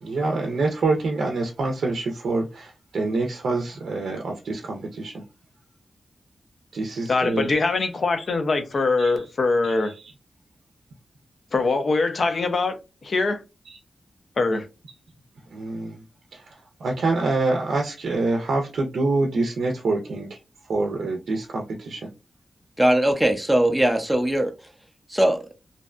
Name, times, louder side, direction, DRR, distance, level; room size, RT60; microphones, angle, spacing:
voice 1, 0.0-5.3 6.7-7.5 8.3-8.4 9.0-9.3 9.6-10.1 13.6-13.8 15.5-16.0 16.3-22.1, right 3 dB, 90° right, 0.4 m, -26 dB
voice 2, 7.1-9.9 11.5-12.8 13.0-13.4 14.4-14.6, left 3 dB, 55° left, 0.5 m, -22 dB
voice 3, 22.8-24.5 25.1-25.5, right 1 dB, 5° right, 0.4 m, -20 dB
2.6 x 2.1 x 2.3 m
wide cardioid pair, 110°, 0 cm